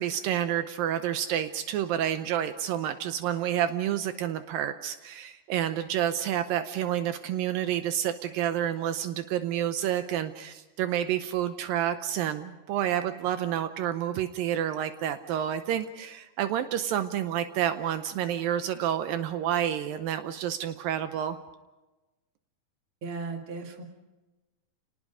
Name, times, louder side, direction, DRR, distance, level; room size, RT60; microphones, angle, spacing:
voice 1, 0.0-21.4, right 10 dB, 80° right, 9 dB, 2.5 m, -29 dB
voice 2, 23.0-23.8, right 4 dB, 40° right, 3 dB, 2.6 m, -36 dB
29.0 x 19.5 x 5.0 m, 1.1 s
omnidirectional pair, 4.1 m